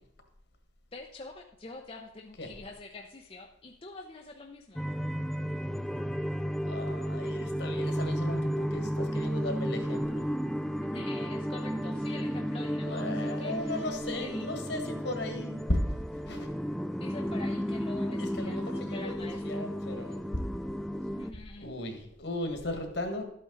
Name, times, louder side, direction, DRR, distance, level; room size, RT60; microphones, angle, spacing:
voice 1, 0.9-4.9 10.8-13.9 14.2-14.5 17.0-19.6 21.0-21.6, left 3 dB, 30° left, 2 dB, 0.7 m, -46 dB
sound 1, 4.8-21.3, equal, ahead, 0.3 m, -33 dB
voice 2, 6.6-10.3 12.8-16.0 16.3-16.5 18.2-20.2 21.3-23.2, left 1 dB, 65° left, 5 dB, 1.9 m, -36 dB
12.5 x 8.6 x 4.0 m, 0.71 s
head